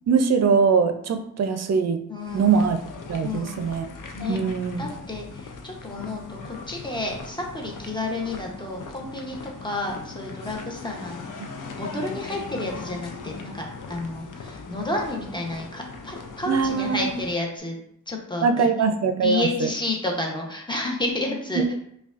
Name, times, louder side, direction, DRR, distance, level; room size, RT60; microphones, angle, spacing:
voice 1, 0.1-2.0 2.3-2.8 3.1-3.9 4.3-4.8 11.4-11.5 16.5-17.2 18.4-19.5 21.6-21.7, right 5 dB, 50° right, 8 dB, 0.5 m, -22 dB
voice 2, 2.1-2.5 3.2-3.6 4.1-4.4 4.8-11.2 11.8-17.8 18.1-18.9 19.2-21.7, left 2 dB, 15° left, -1 dB, 0.8 m, -30 dB
sound 1, 2.2-17.4, left 4 dB, 70° left, 0.6 m, -39 dB
5.0 x 2.3 x 2.4 m, 0.72 s
cardioid pair, 75°, 33 cm